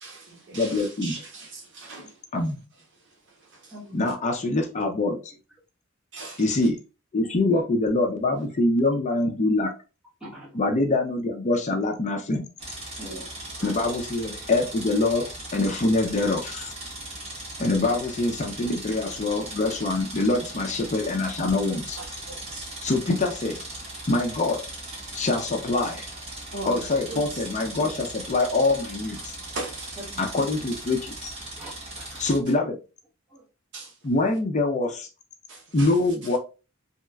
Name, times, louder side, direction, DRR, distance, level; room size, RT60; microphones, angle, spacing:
voice 1, 0.0-2.2 2.9-4.0 6.1-6.4 21.7-22.9 25.1-25.3 25.8-26.0 26.5-27.8 29.5-30.8 33.7-34.0 35.5-36.4, right 2 dB, 60° right, 1.0 m, -41 dB
voice 2, 0.5-1.2 2.3-2.6 3.9-5.3 6.4-6.8 7.1-9.7 10.5-12.5 13.6-15.2 15.5-16.7 17.6-22.0 22.8-23.6 24.1-24.7 25.1-26.1 26.6-29.4 30.2-31.3 32.2-32.8 34.0-35.1 35.7-36.4, left 2 dB, 35° left, 0.5 m, -24 dB
voice 3, 3.7-4.1 10.2-10.6 13.0-13.3 13.6-13.8 27.7-27.9 30.0-30.4 31.6-32.2 33.3-33.4, right 1 dB, 5° right, 1.2 m, -42 dB
sound 1, 12.6-32.4, right 2 dB, 30° right, 1.0 m, -38 dB
3.1 x 2.8 x 2.2 m
head